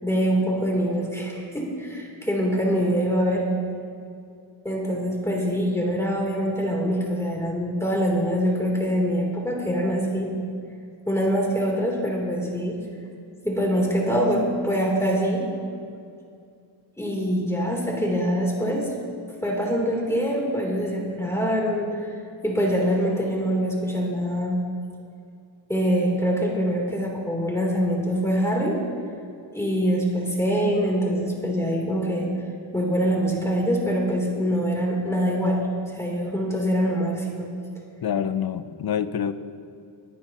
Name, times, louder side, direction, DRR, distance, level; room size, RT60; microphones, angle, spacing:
voice 1, 0.0-3.5 4.6-10.3 11.1-12.8 13.4-15.5 17.0-18.9 19.4-22.1 22.4-24.6 25.7-28.8 29.5-32.3 32.7-35.6 35.9-37.5, equal, 5° left, -2 dB, 3.5 m, -24 dB
voice 2, 38.0-39.3, left 8 dB, 50° left, 13 dB, 0.7 m, -26 dB
25.0 x 10.5 x 3.0 m, 2.4 s
cardioid pair, 80°, 48 cm